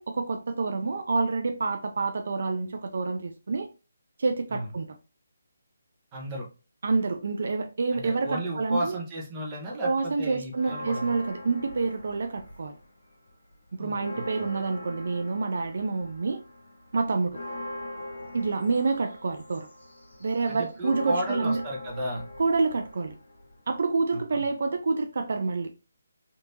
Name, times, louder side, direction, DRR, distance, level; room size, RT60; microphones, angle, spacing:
voice 1, 0.0-3.7 4.2-4.9 6.8-9.0 9.8-12.8 13.7-16.4 16.9-17.4 18.3-19.7 20.2-21.6 22.4-23.1 23.7-25.7, right 4 dB, 60° right, 0.4 m, -28 dB
voice 2, 6.1-6.4 7.9-11.1 13.8-14.2 20.5-22.2 24.1-24.4, right 1 dB, 20° right, 1.0 m, -34 dB
sound 1, 10.5-12.9 13.3-23.8, left 1 dB, 60° left, 1.5 m, -41 dB
3.4 x 2.8 x 2.7 m
hypercardioid pair, 165°, 0 cm